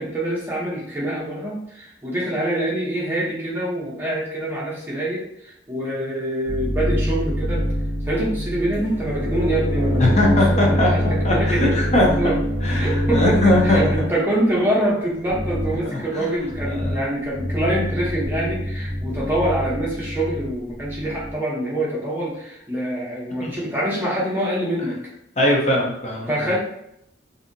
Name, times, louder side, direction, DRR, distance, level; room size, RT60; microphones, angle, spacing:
voice 1, 0.0-7.7 8.1-11.0 11.3-11.7 12.2-12.4 12.7-25.0 26.3-26.6, right 1 dB, 10° right, -6 dB, 0.7 m, -25 dB
sound 1, 6.4-14.1 15.2-15.8 16.4-17.0 17.3-21.3, equal, 60° left, 1.4 m, -24 dB
voice 2, 10.0-10.9 11.2-12.1 12.6-13.9 16.1-16.3 16.7-17.0 23.4-23.6 25.4-26.5, left 1 dB, 35° left, -2 dB, 0.6 m, -20 dB
2.7 x 2.6 x 2.6 m, 0.78 s
head